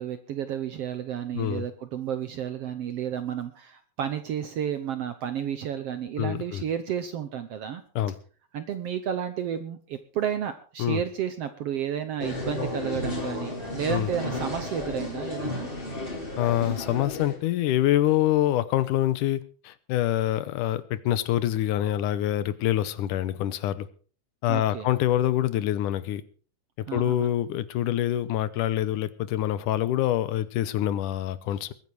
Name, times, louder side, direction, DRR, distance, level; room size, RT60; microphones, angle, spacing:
voice 1, 0.0-7.8 8.5-15.7 24.5-24.9 26.9-27.3, right 9 dB, 70° right, 10 dB, 1.6 m, -32 dB
voice 2, 1.4-1.7 6.2-6.6 8.0-8.1 10.8-11.0 13.9-14.1 16.4-23.9 24.4-26.2 26.8-31.7, left 12 dB, 75° left, 16 dB, 2.3 m, -26 dB
sound 1, 12.2-17.4, left 2 dB, 15° left, 4.4 m, -33 dB
21.5 x 9.6 x 4.7 m, 0.40 s
omnidirectional pair, 3.8 m